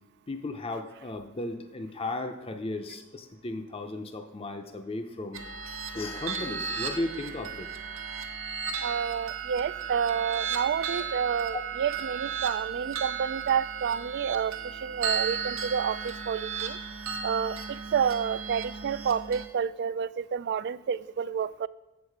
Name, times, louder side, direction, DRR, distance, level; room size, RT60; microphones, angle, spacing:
voice 1, 0.3-5.4 5.9-7.7 11.5-11.6, left 2 dB, 30° left, 6 dB, 0.6 m, -35 dB
sound 1, 5.3-19.4, right 7 dB, 90° right, 1.2 m, -35 dB
voice 2, 8.8-16.8 17.2-21.7, right 7 dB, 55° right, 17 dB, 0.3 m, -29 dB
8.2 x 7.1 x 4.8 m, 1.1 s
head